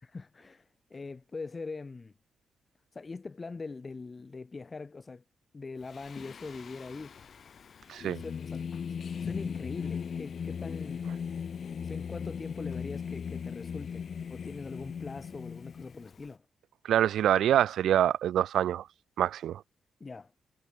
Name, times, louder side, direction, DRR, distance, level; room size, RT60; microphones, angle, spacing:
voice 1, 0.0-2.1 2.9-5.2 5.5-7.1 8.0-11.1 11.8-16.4 20.0-20.3, left 4 dB, 25° left, 1.1 m, -42 dB
Singing, 5.9-16.3, left 7 dB, 50° left, 1.1 m, -38 dB
voice 2, 16.8-18.9 19.2-19.6, right 11 dB, 80° right, 0.8 m, -25 dB
cardioid pair, 120°, 0 cm